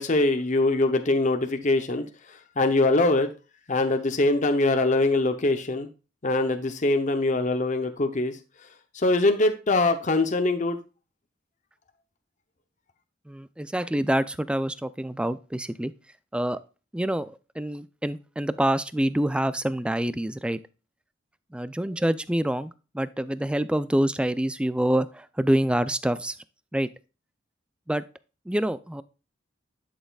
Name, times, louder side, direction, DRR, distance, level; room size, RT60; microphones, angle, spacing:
voice 1, 0.0-2.0 2.6-3.3 3.7-5.9 6.2-8.4 9.0-10.8, left 2 dB, 40° left, 0.7 m, -23 dB
voice 2, 13.3-15.9 16.3-16.6 16.9-20.6 21.5-26.4 26.7-26.9 27.9-28.0 28.5-29.0, right 1 dB, 5° right, 0.4 m, -26 dB
11.0 x 6.5 x 2.3 m
head